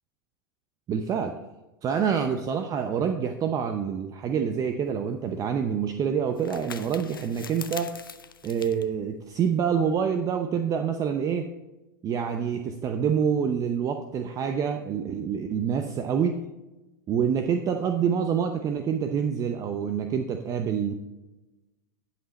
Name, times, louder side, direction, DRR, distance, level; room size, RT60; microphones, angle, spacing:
voice 1, 0.9-1.3 1.8-7.9 8.4-11.5 12.0-16.5 17.1-20.9, right 7 dB, 30° right, 7 dB, 0.7 m, -27 dB
sound 1, 4.9-10.0, left 6 dB, 90° left, 0.6 m, -45 dB
11.0 x 5.8 x 4.1 m, 1.1 s
hypercardioid pair, 100°, 11 cm